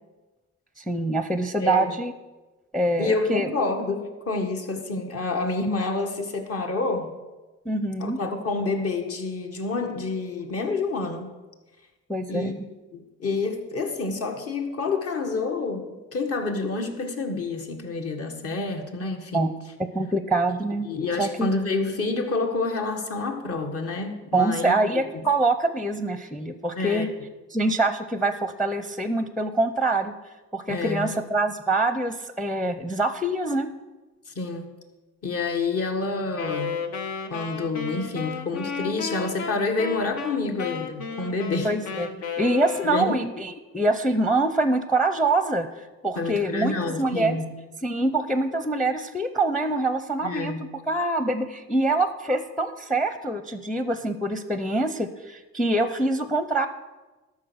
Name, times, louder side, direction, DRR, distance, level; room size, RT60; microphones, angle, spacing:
voice 1, 0.8-2.1 2.7-3.5 7.7-8.2 12.1-12.7 19.3-19.5 19.9-20.9 21.2-21.5 24.3-27.1 27.5-30.1 30.5-33.7 41.6-47.4 47.8-50.6 50.9-56.7, right 2 dB, ahead, 11 dB, 0.6 m, -25 dB
voice 2, 1.6-2.0 3.0-7.1 8.0-11.4 12.3-12.5 12.9-19.5 20.8-25.2 26.7-27.1 30.7-31.1 34.3-34.7 35.2-36.8 37.3-41.7 42.8-43.2 46.1-47.5 50.2-50.6, left 3 dB, 55° left, 4 dB, 1.7 m, -28 dB
Wind instrument woodwind instrument, 36.3-43.3, left 5 dB, 75° left, 1.1 m, -33 dB
12.5 x 5.9 x 6.3 m, 1.2 s
cardioid pair, 85°, 29 cm